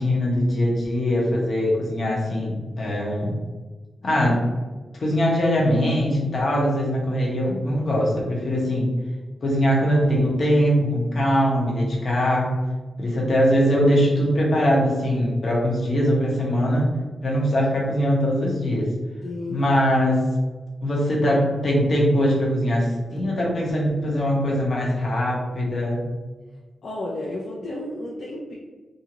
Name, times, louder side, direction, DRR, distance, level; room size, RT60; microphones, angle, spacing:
voice 1, 0.0-3.3 4.0-4.4 5.0-8.9 9.4-12.5 13.0-16.9 17.2-18.9 19.5-20.3 20.8-26.0, equal, 55° left, -3 dB, 0.9 m, -21 dB
voice 2, 19.2-19.7 26.8-28.5, left 1 dB, 70° left, -4 dB, 0.5 m, -32 dB
2.6 x 2.4 x 2.9 m, 1.3 s
cardioid pair, 85°, 0 cm